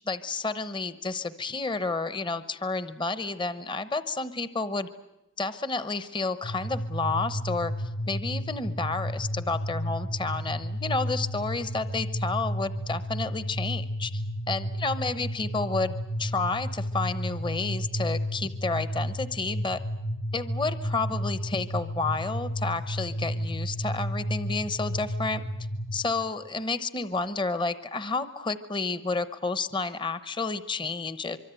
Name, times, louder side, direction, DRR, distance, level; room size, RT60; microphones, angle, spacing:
voice 1, 0.1-4.9 5.4-7.7 8.1-14.2 14.5-19.8 20.3-25.4 25.9-31.4, left 3 dB, 20° left, 13 dB, 0.9 m, -30 dB
sound 1, 6.4-26.0, equal, 45° left, 1.5 m, -32 dB
25.0 x 24.0 x 9.0 m, 0.95 s
head